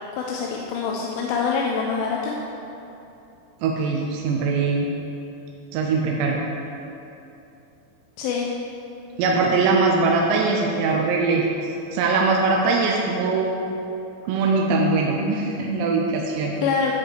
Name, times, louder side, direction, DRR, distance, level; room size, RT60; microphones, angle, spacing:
voice 1, 0.1-2.4 8.2-8.5 16.6-16.9, left 5 dB, 85° left, -1 dB, 3.2 m, -25 dB
voice 2, 3.6-4.9 5.7-6.4 9.2-13.6 14.3-16.5, right 3 dB, 80° right, -1 dB, 2.7 m, -21 dB
11.0 x 4.8 x 7.7 m, 2.9 s
omnidirectional pair, 5.4 m